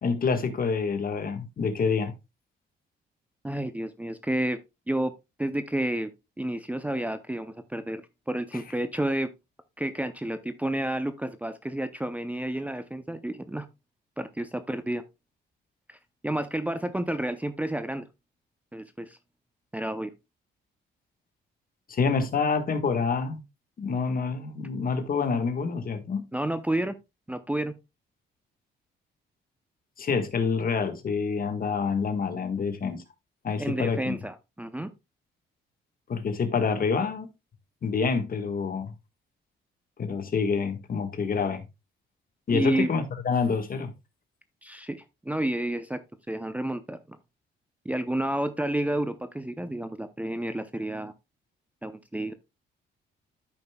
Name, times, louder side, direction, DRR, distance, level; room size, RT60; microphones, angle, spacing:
voice 1, 0.0-2.1 21.9-23.4 23.8-26.2 30.0-33.0 33.4-34.2 36.1-37.3 37.8-38.9 40.0-41.6 42.5-43.9, left 5 dB, 45° left, 1.5 m, -27 dB
voice 2, 3.4-4.6 4.9-5.1 5.4-6.1 6.4-8.0 8.3-9.3 9.8-13.6 14.2-15.0 15.9-18.0 18.7-19.2 19.7-20.1 26.3-26.9 27.3-27.7 33.6-34.9 42.5-42.9 44.6-46.0 46.3-47.2 47.8-51.1 51.8-52.3, right 1 dB, 5° right, 0.6 m, -30 dB
13.5 x 5.3 x 2.3 m
cardioid pair, 90°, 20 cm